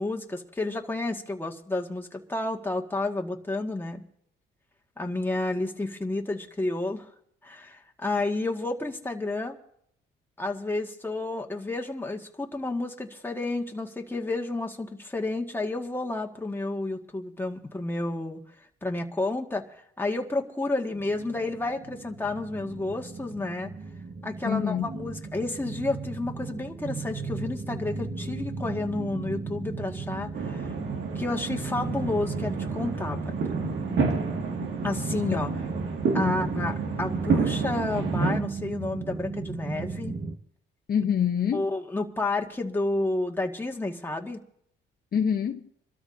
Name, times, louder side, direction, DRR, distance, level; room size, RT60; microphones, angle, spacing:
voice 1, 0.0-4.0 5.0-7.1 7.4-9.6 10.4-18.4 18.8-23.7 24.2-30.7 31.2-33.3 34.8-35.5 36.1-40.1 41.5-44.4, left 2 dB, 10° left, 1.9 m, -31 dB
sound 1, 20.9-40.3, right 4 dB, 40° right, 1.4 m, -35 dB
voice 2, 24.4-24.9 36.1-36.4 40.9-41.6 45.1-45.7, left 8 dB, 50° left, 1.0 m, -26 dB
sound 2, 30.3-38.4, right 4 dB, 75° right, 2.2 m, -30 dB
28.0 x 13.0 x 2.7 m
cardioid pair, 90°, 20 cm